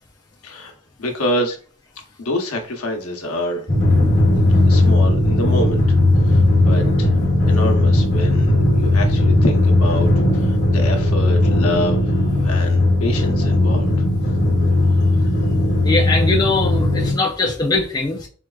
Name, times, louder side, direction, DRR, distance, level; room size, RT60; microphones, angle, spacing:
voice 1, 1.0-1.6 2.2-3.6 4.7-7.2 7.5-12.2 12.4-13.9, left 1 dB, 85° left, 3 dB, 0.8 m, -26 dB
Drum, 3.7-17.1, left 1 dB, 40° left, 1.1 m, -16 dB
voice 2, 15.8-18.3, left 3 dB, 20° left, -1 dB, 0.4 m, -21 dB
4.5 x 2.3 x 2.3 m, 0.40 s
head